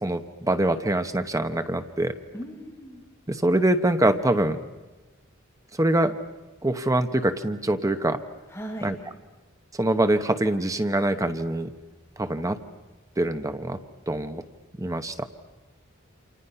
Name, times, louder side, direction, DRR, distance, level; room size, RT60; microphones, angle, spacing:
voice 1, 0.0-2.1 3.3-4.6 5.8-6.1 6.6-8.2 8.8-9.0 9.7-11.7 12.2-12.6 13.2-13.8 14.1-14.4 14.8-15.3, right 1 dB, 15° right, 8 dB, 1.0 m, -24 dB
voice 2, 2.3-3.0 8.5-8.9, right 1 dB, 15° left, -4 dB, 7.9 m, -37 dB
28.5 x 27.5 x 5.7 m, 1.2 s
head